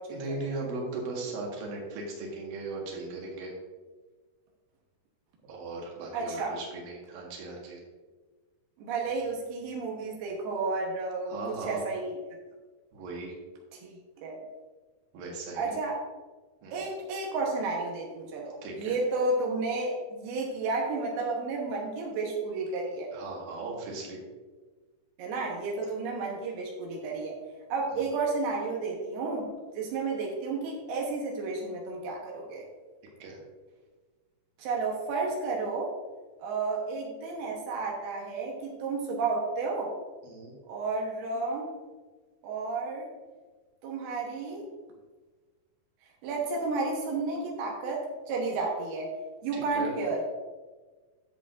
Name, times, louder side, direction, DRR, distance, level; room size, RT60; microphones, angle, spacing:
voice 1, 0.1-3.5 5.5-7.8 11.2-11.8 12.9-13.3 15.1-15.8 16.6-16.9 18.6-18.9 23.1-24.2 28.0-28.1 33.2-33.4 40.2-40.5 49.5-49.9, right 3 dB, 70° right, -2 dB, 3.3 m, -38 dB
voice 2, 6.1-6.5 8.8-11.3 11.6-12.2 13.7-13.9 14.2-14.4 15.5-16.0 16.7-23.1 25.2-27.4 27.7-32.7 34.6-35.9 36.4-39.9 40.7-41.7 42.4-43.1 43.8-44.6 46.2-49.1 49.4-50.4, right 3 dB, 90° right, -2 dB, 3.1 m, -32 dB
10.5 x 7.4 x 2.6 m, 1.3 s
omnidirectional pair, 4.4 m